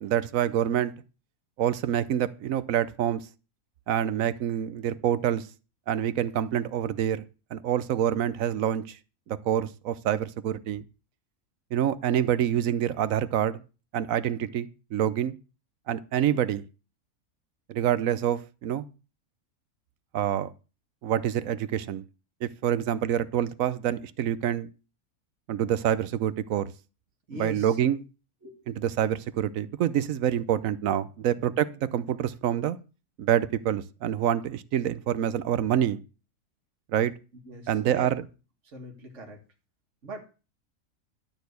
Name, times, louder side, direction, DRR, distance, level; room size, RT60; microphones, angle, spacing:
voice 1, 0.0-0.9 1.6-3.2 3.9-5.4 5.9-7.2 7.5-9.0 9.3-10.8 11.7-13.6 13.9-15.3 15.9-16.6 17.7-18.9 20.1-20.5 21.0-22.0 22.4-24.7 25.5-26.7 27.3-28.0 28.7-32.8 33.2-36.0 36.9-37.1 37.7-38.2, right 10 dB, 65° right, 1.0 m, -26 dB
voice 2, 27.3-27.8 28.4-28.7 31.2-31.6 37.5-38.1 38.6-39.4 40.0-40.3, right 2 dB, 50° right, 2.2 m, -41 dB
12.0 x 4.2 x 8.1 m
omnidirectional pair, 1.6 m